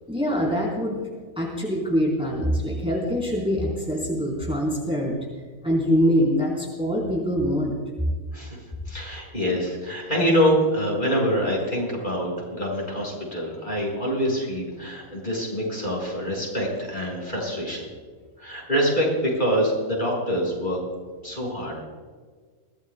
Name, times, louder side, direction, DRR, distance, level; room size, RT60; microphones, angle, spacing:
voice 1, 0.1-1.0 1.4-5.2 5.6-7.8, equal, 5° right, -4 dB, 4.0 m, -24 dB
voice 2, 8.9-17.9 18.4-20.8 21.2-21.9, equal, 35° left, -3 dB, 5.9 m, -25 dB
24.0 x 17.5 x 2.3 m, 1.5 s
omnidirectional pair, 1.5 m